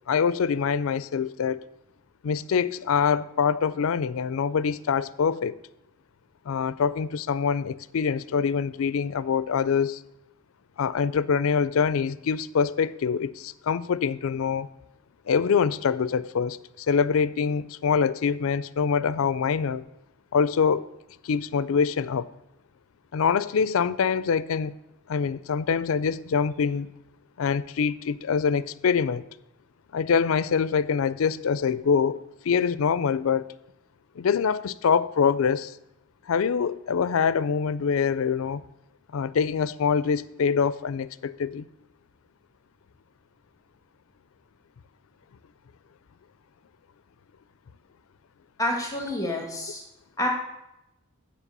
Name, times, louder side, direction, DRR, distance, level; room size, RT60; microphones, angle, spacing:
voice 1, 0.1-1.6 2.2-5.6 6.5-10.0 10.8-14.7 15.3-19.8 20.3-20.9 21.2-22.3 23.1-24.8 25.1-26.9 27.4-29.2 29.9-32.2 32.4-33.6 34.2-35.8 36.3-38.6 39.1-41.7, left 6 dB, 75° left, 0.4 m, -25 dB
voice 2, 48.6-49.8 50.2-50.3, left 1 dB, 15° left, 1.4 m, -28 dB
7.4 x 7.1 x 6.7 m
head